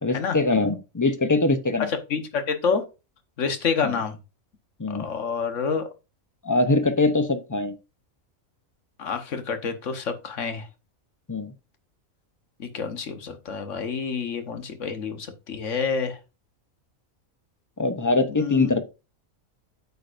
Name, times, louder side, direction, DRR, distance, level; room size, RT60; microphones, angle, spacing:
voice 1, 0.0-1.9 3.8-4.0 4.8-5.1 6.4-7.8 11.3-11.5 17.8-18.8, left 2 dB, 25° left, 0.4 m, -23 dB
voice 2, 1.9-2.8 3.4-4.2 4.9-5.8 9.0-10.7 12.6-16.2 18.3-18.7, left 5 dB, 65° left, 1.5 m, -28 dB
9.2 x 7.0 x 2.5 m
omnidirectional pair, 1.4 m